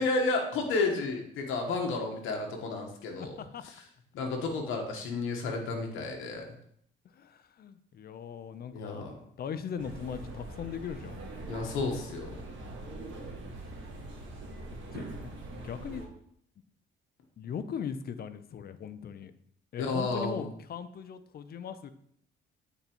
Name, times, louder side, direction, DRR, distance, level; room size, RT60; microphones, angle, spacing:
voice 1, 0.0-3.4 4.1-6.4 8.7-9.1 11.5-12.3 19.8-20.5, left 3 dB, 90° left, 2 dB, 1.1 m, -31 dB
voice 2, 3.2-3.6 7.1-9.1 9.4-11.4 14.7-15.3 15.6-16.0 17.4-19.3 19.7-21.9, left 7 dB, 50° left, 12 dB, 0.6 m, -39 dB
sound 1, 9.8-16.1, right 2 dB, 70° right, 1.5 m, -42 dB
8.9 x 4.0 x 3.0 m, 0.67 s
cardioid pair, 90°, 20 cm